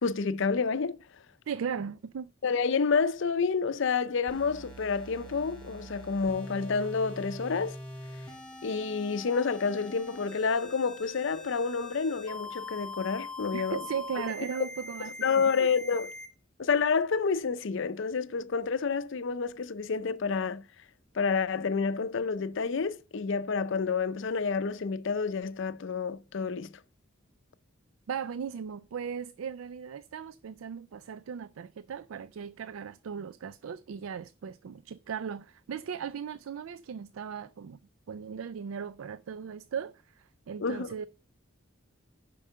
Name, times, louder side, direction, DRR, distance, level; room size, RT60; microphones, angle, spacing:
voice 1, 0.0-1.0 2.4-7.8 8.6-13.8 15.2-16.1 16.6-20.6 21.1-26.7 40.6-40.9, left 5 dB, 65° left, 0.5 m, -29 dB
voice 2, 1.5-2.3 13.5-15.1 15.4-15.5 28.1-37.8 38.1-41.1, right 7 dB, 90° right, 0.4 m, -37 dB
sound 1, 4.3-16.3, left 2 dB, 5° left, 2.4 m, -43 dB
7.2 x 5.4 x 6.6 m
head